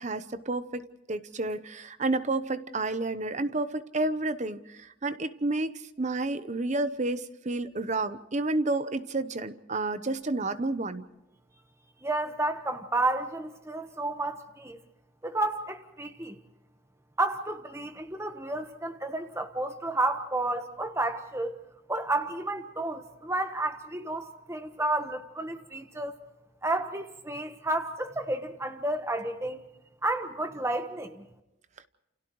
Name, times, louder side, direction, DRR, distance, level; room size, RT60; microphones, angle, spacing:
voice 1, 0.0-5.7 6.0-11.1, right 2 dB, 35° right, 0.8 m, -30 dB
voice 2, 12.0-14.8 15.2-16.4 17.2-21.6 21.9-26.2 26.6-29.6 30.0-31.2, right 2 dB, 15° right, 1.2 m, -31 dB
30.0 x 28.5 x 3.1 m
head